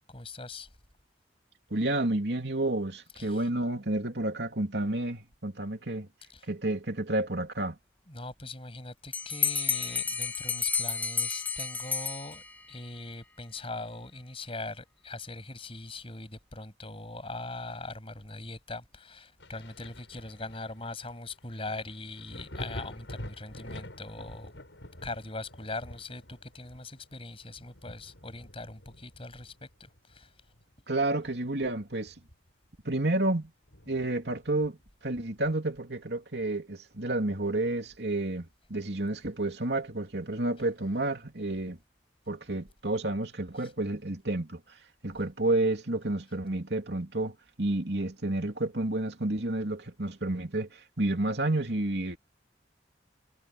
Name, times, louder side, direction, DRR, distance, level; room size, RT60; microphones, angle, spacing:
voice 1, 0.1-0.7 3.2-3.5 6.3-6.5 8.1-24.5 25.0-30.3 43.6-43.7, left 2 dB, 30° left, 7.6 m, -41 dB
voice 2, 1.7-6.1 6.5-7.8 30.9-32.1 32.8-33.5 33.9-34.8 35.0-41.8 42.3-44.6 45.0-52.2, right 2 dB, 70° right, 3.0 m, -30 dB
Bell, 9.1-12.8, left 5 dB, 10° left, 1.1 m, -31 dB
Thunder, 19.4-30.7 31.1-32.7 33.0-33.1 33.7-35.0 36.4-36.5, left 1 dB, 90° left, 7.2 m, -47 dB
head